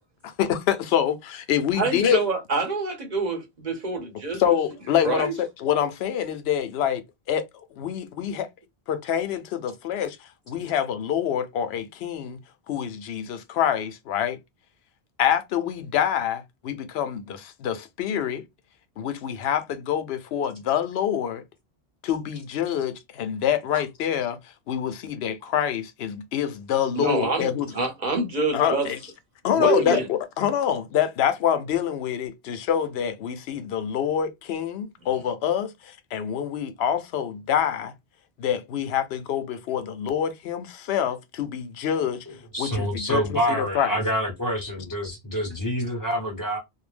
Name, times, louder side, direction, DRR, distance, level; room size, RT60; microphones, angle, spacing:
voice 1, 0.2-2.2 4.4-7.4 7.7-8.5 8.9-10.2 10.5-12.4 12.7-14.4 15.2-18.5 19.0-21.4 22.0-24.4 24.7-27.7 28.5-29.0 29.4-37.9 38.4-42.2 42.6-44.0, left 9 dB, 75° left, 0.8 m, -26 dB
voice 2, 1.8-4.4 5.0-5.3 27.0-28.9 29.5-30.1, right 3 dB, 45° right, 0.9 m, -26 dB
voice 3, 42.3-46.6, equal, 20° left, 1.0 m, -27 dB
2.6 x 2.0 x 3.2 m
omnidirectional pair, 1.1 m